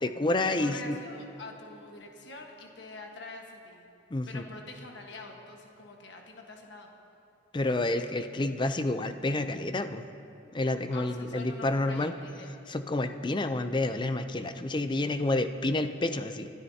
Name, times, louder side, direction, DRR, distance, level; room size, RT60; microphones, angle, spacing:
voice 1, 0.0-1.0 4.1-4.4 7.5-10.0 10.5-12.1 12.7-16.5, left 2 dB, 25° left, 9 dB, 0.5 m, -29 dB
voice 2, 0.6-3.8 4.3-6.9 10.9-12.5, left 3 dB, 65° left, 1 dB, 1.4 m, -45 dB
26.0 x 12.5 x 2.8 m, 2.9 s
head